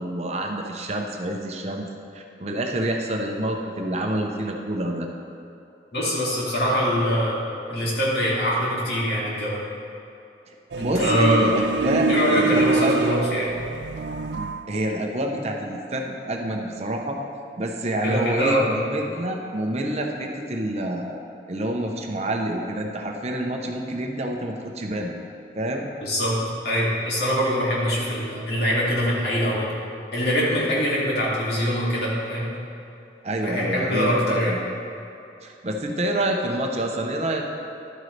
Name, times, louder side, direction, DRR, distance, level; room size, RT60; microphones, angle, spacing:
voice 1, 0.0-1.9 2.1-5.1 10.5-12.9 14.3-17.2 17.6-21.1 21.5-25.1 25.6-25.9 33.2-34.6 35.4-37.4, right 1 dB, 35° right, 2 dB, 0.7 m, -27 dB
voice 2, 5.9-7.4 7.7-9.6 10.8-11.5 12.1-13.5 18.0-18.6 26.0-26.4 26.6-29.7 30.1-32.5 33.4-34.5, equal, 60° left, -6 dB, 2.5 m, -23 dB
sound 1, 10.7-14.6, right 3 dB, 70° right, 0.4 m, -25 dB
12.0 x 9.0 x 3.3 m, 2.7 s
head